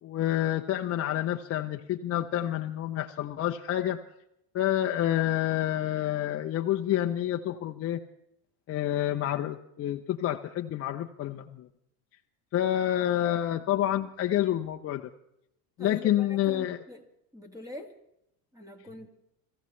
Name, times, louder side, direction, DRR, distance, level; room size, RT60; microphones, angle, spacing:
voice 1, 0.0-4.0 4.5-8.0 8.7-11.7 12.5-15.0 15.8-16.8, left 12 dB, 30° left, 4 dB, 0.6 m, -28 dB
voice 2, 15.8-17.0 17.3-18.0 18.5-19.1, left 1 dB, 5° right, 5 dB, 1.9 m, -44 dB
27.5 x 15.0 x 3.2 m, 0.79 s
supercardioid pair, 125°, 46 cm